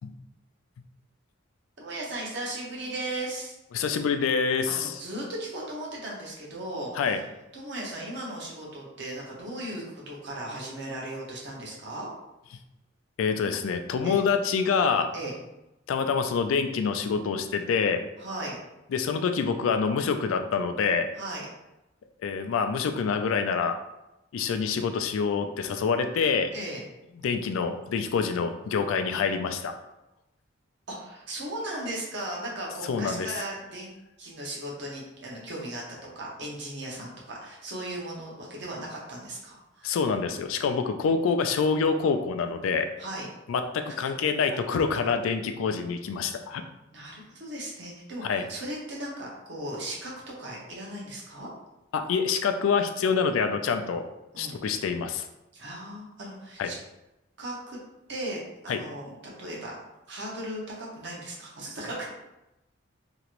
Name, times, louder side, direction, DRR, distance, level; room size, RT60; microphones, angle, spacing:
voice 1, 1.8-3.5 4.7-6.9 7.5-12.1 14.0-14.2 15.1-15.4 18.2-18.6 21.1-21.5 26.5-26.8 30.9-35.8 36.1-40.0 43.0-43.3 46.9-51.5 54.3-54.6 55.5-56.8 57.4-57.8 58.1-59.8 60.1-62.1, right 1 dB, 60° right, -3 dB, 0.9 m, -37 dB
voice 2, 3.7-4.9 7.0-7.2 13.2-15.1 15.9-18.0 18.9-21.1 22.2-23.8 24.3-26.5 27.2-29.7 32.9-33.3 39.8-42.9 43.5-46.6 48.2-48.4 51.9-54.0 54.4-55.3 56.6-56.7 58.7-58.8, left 5 dB, 90° left, 8 dB, 0.3 m, -26 dB
2.9 x 2.5 x 2.9 m, 0.93 s
head